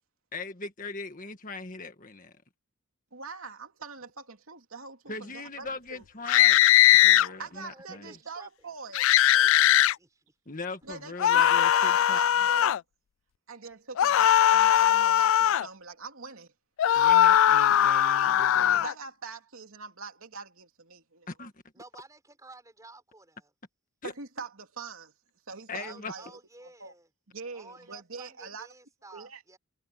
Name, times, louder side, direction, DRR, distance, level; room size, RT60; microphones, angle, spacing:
voice 1, 0.3-2.3 5.1-6.6 6.9-8.1 10.5-12.5 16.9-18.8 21.3-21.5 24.0-24.1 25.7-26.1, left 3 dB, 40° left, 1.7 m, -40 dB
voice 2, 3.1-6.0 7.4-9.1 10.8-12.8 13.5-16.5 18.7-21.3 24.0-25.1 25.5-26.4 26.8-26.9 27.3-28.7 29.1-29.4, right 4 dB, 70° right, 2.9 m, -43 dB
sound 1, 6.3-7.3 8.9-9.9 11.2-12.8 14.0-15.7 16.8-18.9, left 11 dB, 65° left, 0.3 m, -20 dB
voice 3, 7.2-8.7 9.3-10.3 21.7-23.5 25.8-27.1 27.5-29.6, right 2 dB, 15° right, 5.4 m, -52 dB
head